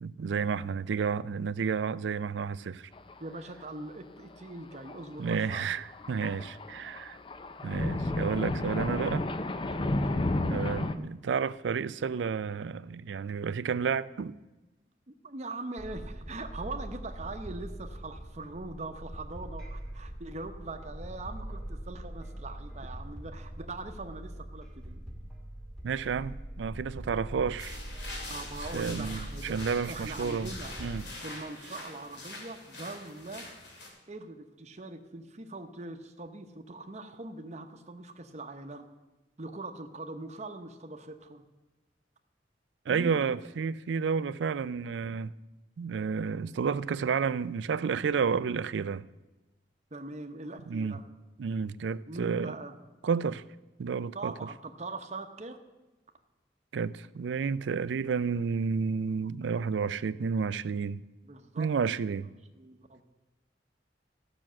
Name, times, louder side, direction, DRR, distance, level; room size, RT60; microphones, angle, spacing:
voice 1, 0.0-2.9 5.2-7.2 7.6-9.3 10.4-14.3 25.8-27.8 28.7-30.5 30.8-31.1 42.9-45.3 45.8-49.1 50.7-51.0 51.4-52.5 53.0-53.4 53.8-54.3 56.7-61.0 61.6-62.3, right 6 dB, 80° right, 0.4 m, -31 dB
Thunder, 2.9-3.3 3.6-3.7 4.7-11.0, left 2 dB, 30° left, 0.5 m, -32 dB
voice 2, 3.2-5.7 9.7-10.1 15.1-25.1 28.3-30.8 31.2-33.5 34.1-38.8 39.4-41.4 42.9-43.3 49.9-51.0 52.1-52.7 54.1-55.6 61.2-61.7 62.5-63.0, right 2 dB, 40° right, 0.9 m, -42 dB
sound 1, 15.8-31.0, right 1 dB, ahead, 1.5 m, -42 dB
sound 2, 27.6-33.9, left 2 dB, 70° left, 2.7 m, -44 dB
14.0 x 6.1 x 7.5 m
head